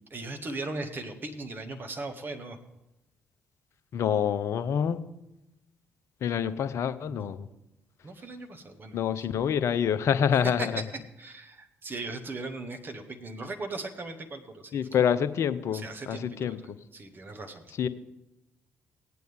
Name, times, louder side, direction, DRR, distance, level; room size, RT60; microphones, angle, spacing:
voice 1, 0.1-2.6 7.1-7.3 8.0-9.3 10.6-10.7 11.2-15.0 15.7-17.7, right 2 dB, 35° right, 6 dB, 1.5 m, -39 dB
voice 2, 3.9-5.0 6.2-7.5 8.9-10.8 14.7-16.8 17.8-17.9, left 8 dB, 55° left, 13 dB, 0.6 m, -27 dB
17.0 x 9.3 x 3.6 m, 0.93 s
figure-of-eight pair, 45°, 6 cm